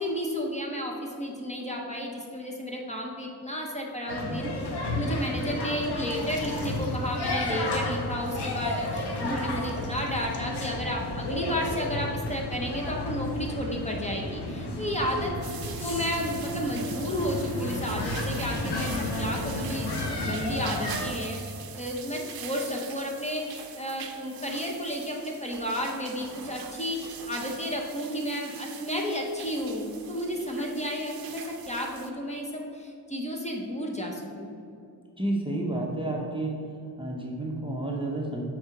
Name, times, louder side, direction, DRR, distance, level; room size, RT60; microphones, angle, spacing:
voice 1, 0.0-4.5 4.9-15.3 15.8-21.4 21.8-34.5, equal, 15° left, -1 dB, 0.9 m, -32 dB
sound 1, 4.1-21.1, left 2 dB, 80° left, 1.2 m, -32 dB
sound 2, 5.3-10.4, left 2 dB, 50° left, 1.1 m, -51 dB
sound 3, 15.4-32.1, right 7 dB, 60° right, 0.6 m, -43 dB
voice 2, 35.2-36.6 37.0-38.4, right 1 dB, 15° right, -2 dB, 0.8 m, -30 dB
7.2 x 3.9 x 5.9 m, 2.5 s
wide cardioid pair, 125°, 40 cm